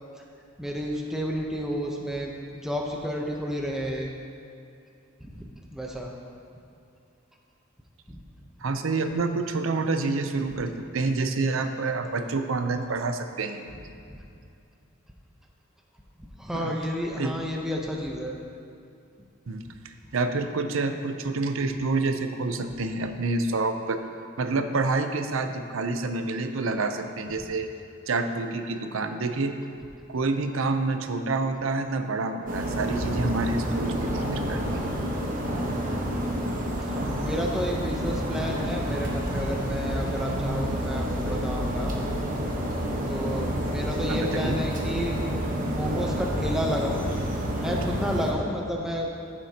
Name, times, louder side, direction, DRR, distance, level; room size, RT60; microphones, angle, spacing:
voice 1, 0.6-4.1 5.2-6.1 8.1-8.2 16.2-18.4 35.9-36.3 36.8-41.9 43.1-45.2 45.6-47.1 47.6-49.1, equal, ahead, -1 dB, 0.7 m, -31 dB
voice 2, 8.6-13.6 16.5-16.7 17.2-17.3 19.5-24.0 24.4-27.7 28.1-29.5 30.1-34.9 44.1-44.6, right 3 dB, 85° right, 7 dB, 0.6 m, -28 dB
sound 1, 32.5-48.3, equal, 40° right, 1.1 m, -29 dB
14.0 x 7.3 x 2.9 m, 2.5 s
head